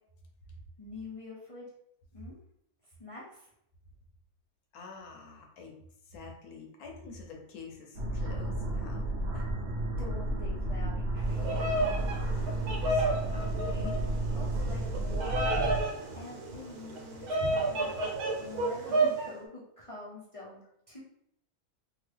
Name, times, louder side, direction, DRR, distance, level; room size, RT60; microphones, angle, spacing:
voice 1, 0.8-1.7 2.1-2.4 3.0-3.5 10.0-11.9 14.3-15.7 16.1-18.1 18.4-21.0, left 2 dB, 45° left, -7 dB, 0.4 m, -46 dB
voice 2, 4.7-5.7 6.1-9.1 9.3-9.5 12.3-14.0 15.5-15.8, left 4 dB, 80° left, 1 dB, 1.1 m, -47 dB
sound 1, 7.9-15.8, right 1 dB, 60° right, 0.8 m, -32 dB
Bird vocalization bird call bird song, 11.2-19.3, right 2 dB, 80° right, 1.2 m, -31 dB
2.8 x 2.4 x 3.2 m, 0.73 s
omnidirectional pair, 1.6 m